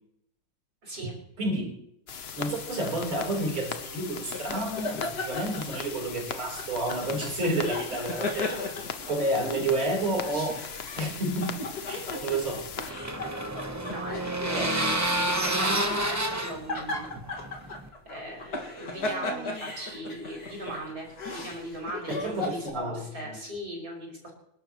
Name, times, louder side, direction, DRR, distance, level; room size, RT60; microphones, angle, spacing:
voice 1, 0.8-1.2 13.9-17.1 18.1-21.1 21.3-24.3, right 1 dB, 45° right, -2 dB, 6.2 m, -39 dB
voice 2, 1.4-1.7 2.4-8.6 9.1-10.6 10.9-12.6 14.5-14.7 22.1-23.0 23.3-23.4, right 1 dB, 75° right, -1 dB, 4.8 m, -30 dB
sound 1, 2.1-12.9, left 6 dB, 75° left, 0.5 m, -39 dB
sound 2, 4.3-6.2 6.6-9.6 10.0-22.7, left 2 dB, 45° left, 2.5 m, -36 dB
sound 3, 12.4-17.9, right 1 dB, 20° right, 0.5 m, -29 dB
28.0 x 12.0 x 3.1 m, 0.76 s
omnidirectional pair, 2.3 m